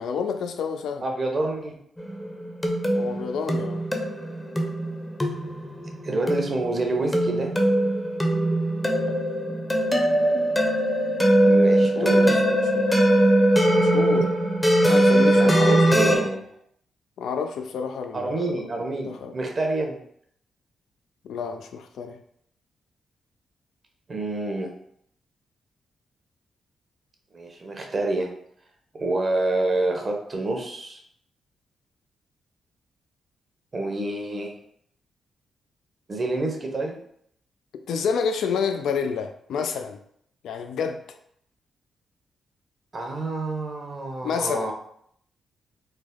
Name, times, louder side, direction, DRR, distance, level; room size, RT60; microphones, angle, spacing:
voice 1, 0.0-1.0 2.9-3.8 8.9-9.2 11.9-12.9 13.8-14.3 14.9-15.8 16.1-16.2 17.2-19.3 21.2-22.2 37.9-40.0 40.4-41.0 44.2-44.7, left 6 dB, 80° left, 6 dB, 0.3 m, -29 dB
voice 2, 1.0-1.8 6.0-7.5 11.4-12.4 15.3-16.4 18.1-20.0 24.1-24.7 27.3-28.3 29.0-31.0 33.7-34.5 36.1-37.0 42.9-44.7, right 2 dB, 45° right, 2 dB, 0.8 m, -28 dB
sound 1, 2.0-16.2, right 1 dB, 15° left, 0.7 m, -21 dB
3.3 x 2.0 x 3.6 m, 0.68 s
supercardioid pair, 50°, 0 cm